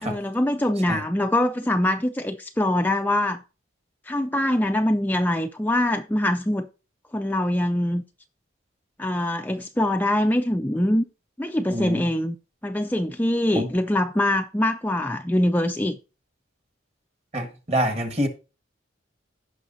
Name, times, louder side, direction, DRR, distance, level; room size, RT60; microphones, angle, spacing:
voice 1, 0.0-3.4 4.1-6.7 7.1-8.0 9.0-11.0 11.4-12.4 12.6-16.0, left 1 dB, 10° left, 0.4 m, -23 dB
voice 2, 11.7-12.0 13.5-13.7 17.3-18.3, equal, 30° right, 1.6 m, -26 dB
16.0 x 5.9 x 2.7 m
head